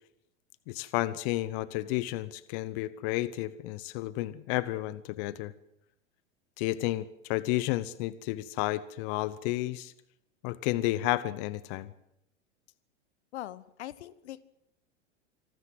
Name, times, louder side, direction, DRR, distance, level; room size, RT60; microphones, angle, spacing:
voice 1, 0.7-5.5 6.6-9.9 10.4-11.9, left 17 dB, 50° left, 17 dB, 0.9 m, -31 dB
voice 2, 13.3-14.4, left 13 dB, 70° left, 19 dB, 1.1 m, -41 dB
26.0 x 13.5 x 7.9 m, 0.85 s
hypercardioid pair, 105°, 35 cm